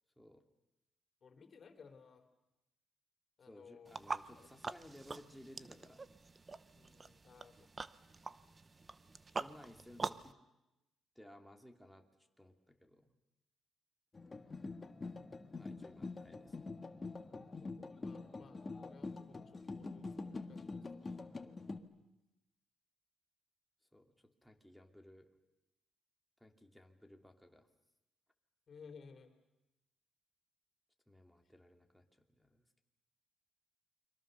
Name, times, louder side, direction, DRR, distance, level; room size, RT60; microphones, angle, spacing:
voice 1, 1.2-2.2 3.4-3.9 4.3-4.5 6.7-7.7 17.6-21.9 28.7-29.3, left 5 dB, 50° left, 5 dB, 3.8 m, -59 dB
voice 2, 3.4-6.1 9.3-10.4 11.2-12.1 12.4-13.1 15.6-16.7 23.9-25.3 26.4-27.7 31.1-32.6, left 1 dB, ahead, 3 dB, 2.7 m, -58 dB
sound 1, 3.9-10.3, right 3 dB, 30° right, 0.8 m, -45 dB
sound 2, 14.1-21.8, left 3 dB, 30° left, 1.7 m, -45 dB
29.5 x 23.5 x 6.8 m, 0.95 s
cardioid pair, 90°, 0 cm